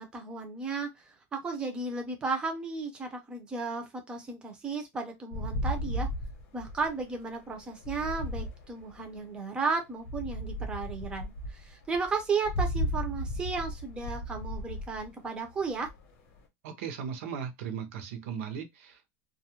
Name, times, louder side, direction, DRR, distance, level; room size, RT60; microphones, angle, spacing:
voice 1, 0.0-6.1 6.5-15.9, right 4 dB, 10° right, 0.5 m, -34 dB
sound 1, 5.3-9.3 10.0-16.4, equal, 40° left, 0.8 m, -35 dB
voice 2, 16.6-19.1, right 7 dB, 55° right, 0.6 m, -37 dB
2.3 x 2.1 x 2.8 m
supercardioid pair, 180°, 8 cm